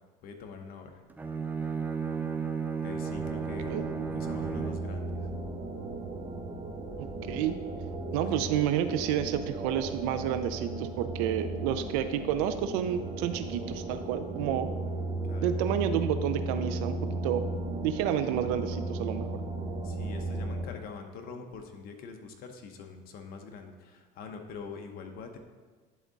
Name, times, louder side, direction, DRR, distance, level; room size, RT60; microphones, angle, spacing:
voice 1, 0.2-0.9 2.8-3.8 4.1-5.1 8.1-8.5 15.3-15.5 19.8-25.4, left 5 dB, 50° left, 4 dB, 0.9 m, -44 dB
Bowed string instrument, 1.1-5.0, right 6 dB, 10° right, 0.4 m, -34 dB
sound 1, 3.0-20.7, right 2 dB, 30° right, 1.2 m, -36 dB
voice 2, 7.0-7.6 8.1-14.7 15.4-17.4 17.8-19.3, right 10 dB, 75° right, 10 dB, 0.6 m, -30 dB
10.5 x 3.6 x 4.0 m, 1.4 s
supercardioid pair, 110°, 20 cm